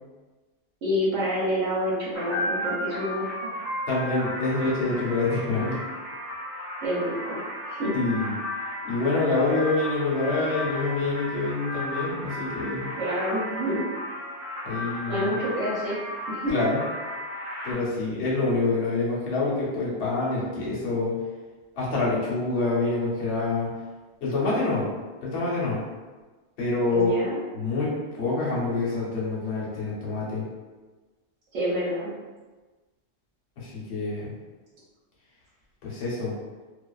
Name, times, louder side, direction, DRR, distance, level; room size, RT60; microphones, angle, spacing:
voice 1, 0.8-3.5 6.8-7.4 7.7-7.9 13.0-13.8 15.1-16.0 16.3-16.5 26.9-27.4 31.5-32.1, equal, 80° right, -8 dB, 1.1 m, -28 dB
sound 1, 2.1-17.7, left 1 dB, 50° right, 1.1 m, -34 dB
voice 2, 3.9-5.8 7.9-8.3 8.8-12.9 14.6-15.3 16.5-16.8 17.6-21.2 21.8-23.7 24.2-24.9 25.2-25.8 26.6-27.2 27.5-30.4 33.6-34.3 35.8-36.3, left 3 dB, 65° left, -5 dB, 1.0 m, -26 dB
2.4 x 2.4 x 2.3 m, 1.3 s
omnidirectional pair, 1.3 m